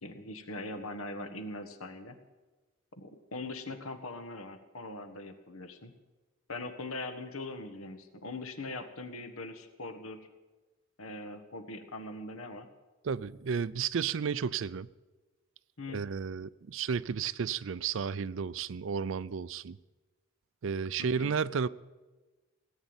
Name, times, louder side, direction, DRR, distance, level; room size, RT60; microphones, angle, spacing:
voice 1, 0.0-2.2 2.9-5.9 6.5-10.3 11.0-12.7 15.8-16.1 21.0-21.3, left 2 dB, 85° left, 1.5 m, -41 dB
voice 2, 13.0-14.9 15.9-19.8 20.6-21.7, right 6 dB, 65° right, 0.4 m, -32 dB
17.5 x 9.2 x 8.9 m
head